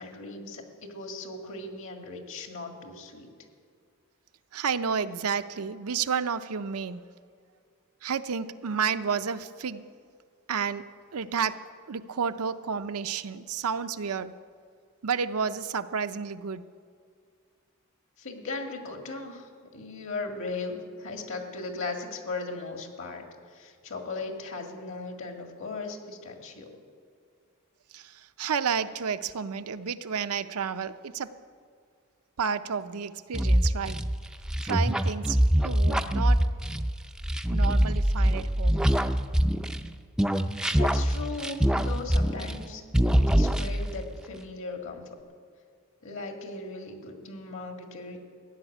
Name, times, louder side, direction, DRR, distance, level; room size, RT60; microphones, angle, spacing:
voice 1, 0.0-3.3 18.2-23.2 23.5-26.7 40.7-45.1 46.0-48.2, left 3 dB, 60° left, 3 dB, 1.9 m, -38 dB
voice 2, 4.5-7.0 8.0-9.8 10.5-10.8 11.1-11.6 11.9-14.3 15.0-16.6 27.9-31.3 32.4-34.0 34.6-36.5 37.5-38.9, right 6 dB, 80° right, 11 dB, 0.6 m, -31 dB
sound 1, 33.3-39.9 40.2-42.7 42.9-44.0, equal, 5° right, 0.4 m, -24 dB
15.0 x 7.3 x 10.0 m, 2.2 s
head